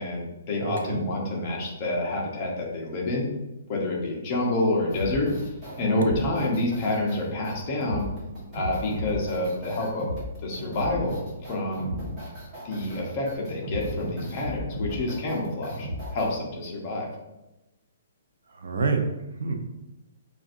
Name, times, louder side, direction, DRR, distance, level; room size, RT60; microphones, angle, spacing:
voice 1, 0.0-3.3 3.7-5.3 5.8-8.1 8.5-10.1 10.4-11.2 11.5-11.9 12.6-17.1, left 2 dB, 25° left, -3 dB, 0.8 m, -28 dB
voice 2, 0.6-1.0 5.9-6.2 18.6-19.1 19.4-19.5, right 4 dB, 75° right, 4 dB, 0.6 m, -28 dB
sound 1, 4.9-16.3, equal, 10° right, 1.3 m, -35 dB
5.8 x 2.5 x 2.6 m, 0.99 s
hypercardioid pair, 175°, 0 cm